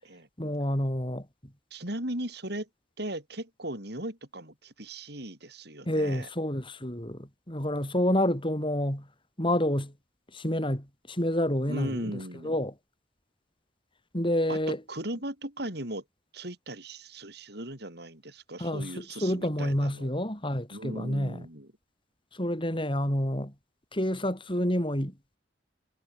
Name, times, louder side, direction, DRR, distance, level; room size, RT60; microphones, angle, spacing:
voice 1, 0.4-1.5 5.9-9.1 9.4-9.9 10.3-12.7 14.1-14.8 18.6-21.5 22.3-23.5 23.9-25.1, left 1 dB, 25° left, 7.6 m, -29 dB
voice 2, 1.7-2.7 3.0-6.3 11.7-12.6 14.5-16.0 16.3-20.1 20.7-21.7, right 1 dB, 60° right, 7.8 m, -38 dB
head